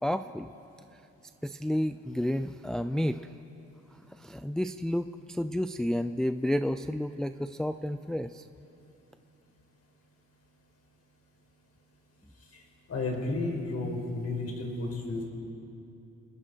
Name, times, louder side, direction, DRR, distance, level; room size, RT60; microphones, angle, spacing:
voice 1, 0.0-0.5 0.9-1.0 1.4-3.3 3.9-8.5, equal, ahead, 10 dB, 0.5 m, -31 dB
voice 2, 12.9-15.2, left 2 dB, 55° left, 1 dB, 5.1 m, -32 dB
29.0 x 20.0 x 4.7 m, 2.9 s
cardioid pair, 90°, 30 cm